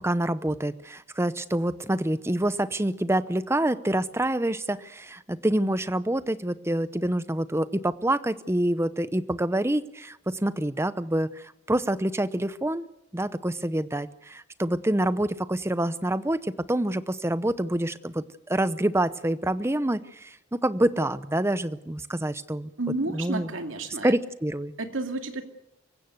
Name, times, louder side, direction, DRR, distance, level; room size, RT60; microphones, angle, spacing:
voice 1, 0.0-12.9 13.1-22.7 23.1-23.5 24.0-24.7, right 1 dB, 15° right, 14 dB, 0.8 m, -27 dB
voice 2, 22.8-24.1 24.8-25.4, right 2 dB, 85° right, 5 dB, 2.5 m, -31 dB
24.5 x 16.0 x 8.1 m, 0.84 s
head